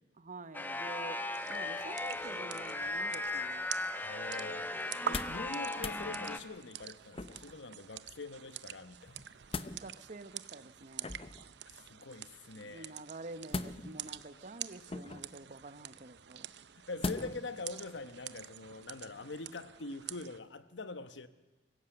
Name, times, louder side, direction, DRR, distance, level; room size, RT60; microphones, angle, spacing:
voice 1, 0.2-1.2 1.5-3.7 9.8-11.2 12.6-16.5, right 2 dB, 45° right, 1.0 m, -48 dB
sound 1, 0.5-6.4, left 2 dB, 10° left, 1.0 m, -37 dB
sound 2, 1.3-20.4, right 9 dB, 65° right, 0.7 m, -47 dB
voice 2, 4.0-4.7 5.0-9.2 11.9-12.9 16.9-21.3, left 3 dB, 80° left, 1.1 m, -44 dB
sound 3, 4.9-5.5 5.7-6.0 7.1-7.6 9.1-9.8 11.0-11.5 13.5-14.1 14.9-15.4 17.0-17.5 17.9-18.0, left 3 dB, 30° left, 0.8 m, -39 dB
24.5 x 16.5 x 7.9 m
head